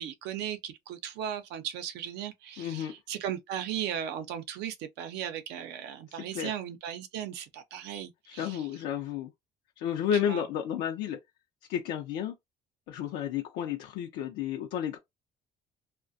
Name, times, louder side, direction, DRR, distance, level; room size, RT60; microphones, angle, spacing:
voice 1, 0.0-8.6 10.3-10.4, right 10 dB, 85° right, 0.6 m, -37 dB
voice 2, 2.6-2.9 6.1-6.5 8.3-9.3 9.8-11.2 11.7-12.3 12.9-15.0, left 9 dB, 90° left, 0.5 m, -32 dB
2.4 x 2.1 x 2.6 m
cardioid pair, 110°, 17 cm